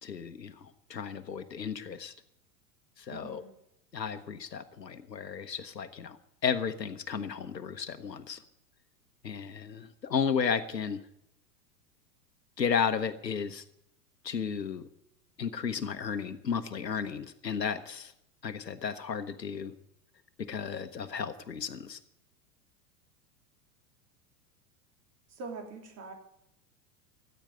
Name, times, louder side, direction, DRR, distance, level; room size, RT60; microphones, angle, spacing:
voice 1, 0.0-2.1 3.0-3.4 3.9-8.4 9.2-11.1 12.6-13.6 14.2-14.9 15.4-18.1 18.4-19.7 20.5-22.0, left 6 dB, 85° left, 9 dB, 1.0 m, -33 dB
voice 2, 3.1-3.5 25.3-26.1, right 3 dB, 30° right, 4 dB, 3.1 m, -43 dB
14.5 x 9.0 x 8.8 m, 0.79 s
figure-of-eight pair, 90°, 48 cm